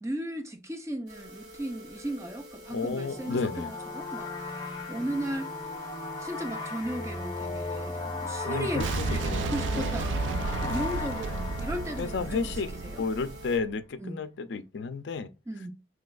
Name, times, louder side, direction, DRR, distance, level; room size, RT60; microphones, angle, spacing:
voice 1, 0.0-5.5 6.2-13.0 14.0-14.2 15.5-15.7, right 1 dB, 15° right, 0.6 m, -36 dB
sound 1, 1.1-13.6, right 1 dB, 65° right, 1.3 m, -48 dB
voice 2, 2.7-3.7 8.5-9.5 9.7-10.0 12.0-12.7 13.0-15.3, left 4 dB, 70° left, 0.4 m, -32 dB
sound 2, 2.8-13.2, left 3 dB, 25° left, 0.7 m, -37 dB
Boom, 8.8-13.7, right 3 dB, 85° right, 0.3 m, -33 dB
3.2 x 3.1 x 2.2 m
head